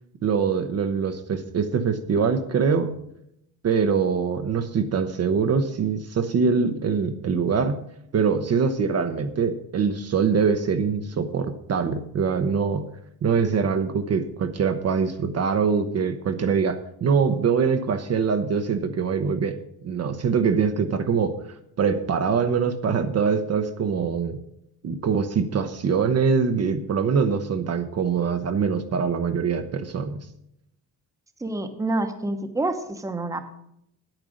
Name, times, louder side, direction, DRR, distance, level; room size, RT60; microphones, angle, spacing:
voice 1, 0.2-3.0 3.6-7.8 8.1-12.9 13.2-19.6 19.8-21.4 21.8-24.4 24.8-30.3, right 6 dB, 40° right, 7 dB, 0.8 m, -23 dB
voice 2, 31.4-33.4, right 2 dB, 10° right, 7 dB, 0.9 m, -27 dB
9.9 x 8.9 x 6.3 m, 0.76 s
cardioid pair, 165°, 38 cm